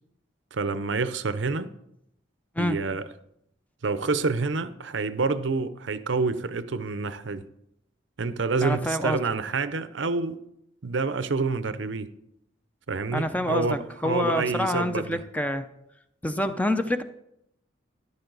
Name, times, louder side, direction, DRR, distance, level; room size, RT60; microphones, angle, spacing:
voice 1, 0.5-1.7 2.6-3.0 3.8-7.4 8.2-10.4 10.8-12.1 12.9-15.2, right 4 dB, 70° right, 0.7 m, -28 dB
voice 2, 8.6-9.2 13.1-15.6 16.2-17.0, left 1 dB, 10° left, 0.6 m, -27 dB
13.5 x 11.0 x 4.0 m
head